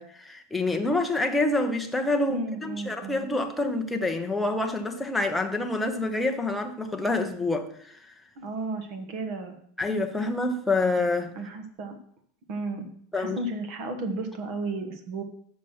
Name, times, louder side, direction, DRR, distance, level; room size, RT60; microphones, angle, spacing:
voice 1, 0.0-8.1 9.8-11.3 13.1-13.4, left 2 dB, 5° left, 0.7 m, -27 dB
voice 2, 2.3-3.3 8.4-9.6 11.4-12.0 12.5-15.2, right 2 dB, 50° right, 1.3 m, -34 dB
5.8 x 5.7 x 6.3 m
supercardioid pair, 160°, 0 cm